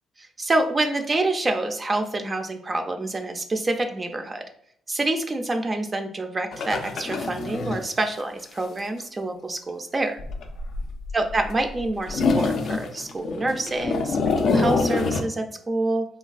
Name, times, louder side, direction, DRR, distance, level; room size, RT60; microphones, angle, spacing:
voice 1, 0.2-4.4 4.9-10.2 11.1-16.1, right 2 dB, 30° right, 5 dB, 0.3 m, -27 dB
sound 1, 6.5-7.9 8.2-8.3 8.6-8.7 10.2-11.5 11.8-15.2, left 4 dB, 65° left, 0.3 m, -25 dB
3.2 x 2.3 x 2.3 m, 0.68 s
cardioid pair, 90°, 0 cm